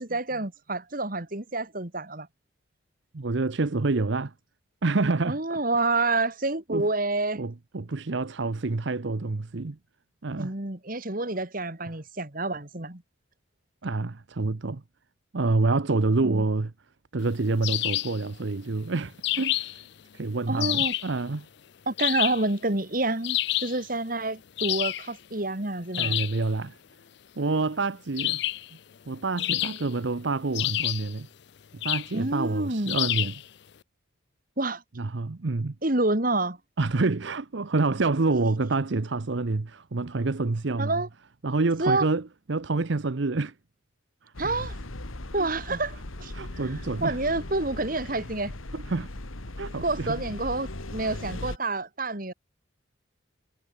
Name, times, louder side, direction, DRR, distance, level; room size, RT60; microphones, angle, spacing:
voice 1, 0.0-2.3 5.3-7.4 10.4-13.0 16.2-16.5 20.5-20.9 21.9-26.2 32.1-33.0 34.6-34.8 35.8-36.6 40.8-41.1 41.8-42.1 44.4-44.8 45.3-46.3 47.0-48.5 49.8-52.3, right 2 dB, 45° right, 2.2 m, -28 dB
voice 2, 3.1-4.3 4.8-5.6 6.7-6.9 7.4-9.8 10.2-10.5 13.8-14.8 15.3-16.7 17.1-19.8 20.1-21.5 26.0-26.8 27.4-28.4 29.1-31.3 31.8-33.3 35.0-35.7 36.8-41.0 41.4-42.2 42.5-43.5 44.2-44.3 45.4-45.8 46.3-47.2 48.7-49.1 49.6-50.2, right 3 dB, 65° right, 0.8 m, -27 dB
sound 1, 17.6-18.2 19.2-19.8 20.6-21.1 22.0-22.5 23.2-23.8 24.6-25.1 25.9-26.4 28.2-28.7 29.4-30.0 30.5-31.1 31.8-32.2 32.9-33.4, left 16 dB, 55° left, 0.4 m, -28 dB
sound 2, 44.3-51.6, left 1 dB, 90° left, 2.1 m, -38 dB
head